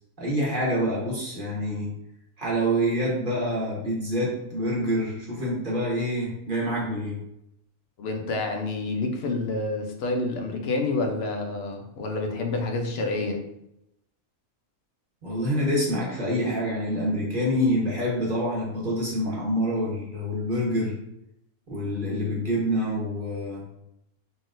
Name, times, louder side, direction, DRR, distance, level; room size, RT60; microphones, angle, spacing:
voice 1, 0.2-1.9 2.4-7.2 15.2-20.9 21.7-23.6, equal, 40° right, -4 dB, 1.3 m, -26 dB
voice 2, 8.0-13.4, left 2 dB, 60° left, 3 dB, 0.8 m, -28 dB
3.9 x 3.8 x 2.5 m, 0.81 s
omnidirectional pair, 1.4 m